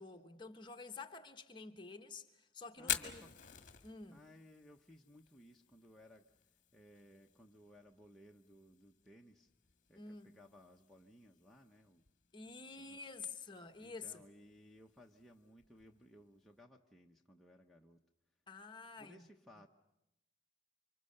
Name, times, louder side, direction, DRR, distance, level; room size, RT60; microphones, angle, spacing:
voice 1, 0.0-3.2 3.8-4.2 9.9-10.3 12.3-14.2 18.5-19.2, left 4 dB, 25° left, 1.2 m, -49 dB
Fire, 2.8-16.6, left 10 dB, 40° left, 1.6 m, -49 dB
voice 2, 2.8-3.5 4.1-9.5 9.9-12.0 12.8-13.1 13.8-18.0 19.0-19.7, equal, ahead, 0.9 m, -61 dB
28.5 x 25.0 x 6.6 m
head